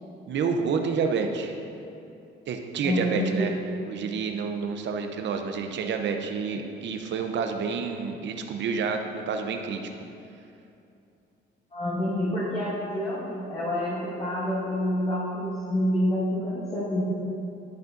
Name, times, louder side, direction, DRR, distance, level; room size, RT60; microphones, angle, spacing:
voice 1, 0.3-1.6 2.5-3.5 3.9-9.8, right 5 dB, 65° right, 5 dB, 0.7 m, -29 dB
voice 2, 2.8-3.6 11.7-17.0, equal, 30° left, -9 dB, 1.6 m, -28 dB
11.5 x 5.3 x 2.6 m, 2.7 s
cardioid pair, 90°, 20 cm